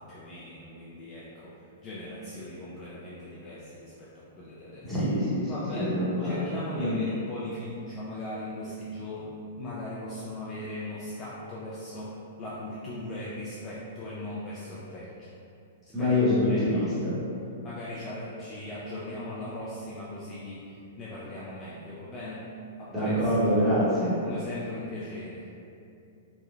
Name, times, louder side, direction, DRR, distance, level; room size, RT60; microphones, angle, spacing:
voice 1, 0.0-1.5 1.8-5.0 5.5-15.3 15.8-16.9 17.6-22.5 22.8-23.3 24.2-25.5, left 1 dB, 25° left, -9 dB, 0.4 m, -39 dB
voice 2, 4.9-6.5 6.8-7.0 15.9-17.1 22.9-24.1, left 1 dB, 5° right, -12 dB, 0.8 m, -25 dB
3.0 x 2.1 x 2.4 m, 2.6 s
hypercardioid pair, 150°, 0 cm